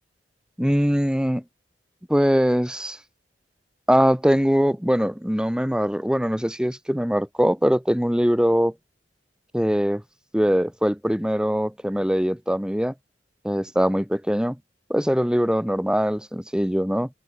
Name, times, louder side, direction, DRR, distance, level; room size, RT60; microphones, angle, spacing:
voice 1, 0.6-1.4 2.1-3.0 3.9-8.7 9.5-10.0 10.3-12.9 13.4-14.6 14.9-17.1, equal, 5° right, 1.5 m, -22 dB
open air
head